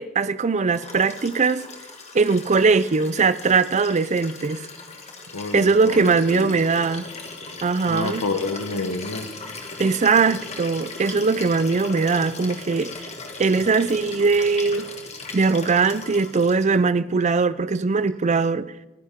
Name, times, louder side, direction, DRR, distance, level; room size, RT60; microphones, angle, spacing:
voice 1, 0.0-1.6 2.1-4.6 5.5-7.1 7.6-8.2 9.8-12.9 13.4-14.9 15.3-18.7, right 4 dB, 30° right, 0.5 m, -20 dB
Liquid, 0.7-16.8 18.1-18.2, left 3 dB, 30° left, 1.9 m, -38 dB
voice 2, 5.3-6.9 7.9-9.4, left 3 dB, 80° left, 1.2 m, -29 dB
28.5 x 10.0 x 3.7 m
head